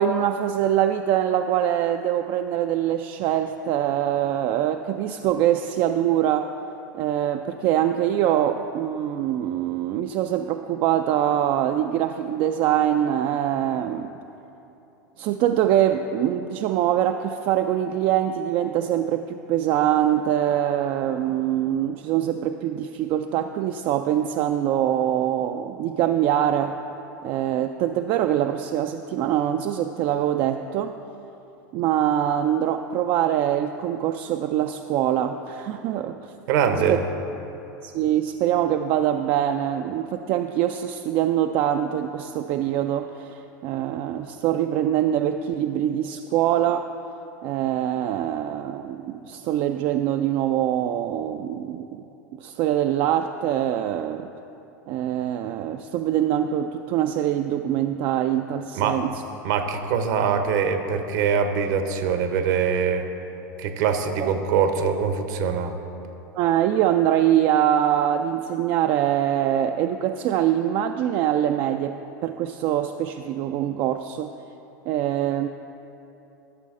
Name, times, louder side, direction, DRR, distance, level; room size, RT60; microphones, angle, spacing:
voice 1, 0.0-6.5 7.0-14.1 15.2-26.8 27.2-30.9 31.7-36.2 37.8-46.9 47.4-52.0 52.4-54.3 54.9-59.1 64.2-64.3 66.4-74.3 74.9-75.5, right 11 dB, 50° right, 6 dB, 0.3 m, -24 dB
voice 2, 36.5-37.0 58.7-59.0 59.4-63.0 63.6-65.7, right 6 dB, 65° right, 7 dB, 0.9 m, -23 dB
13.5 x 6.4 x 3.7 m, 3.0 s
hypercardioid pair, 95°, 11 cm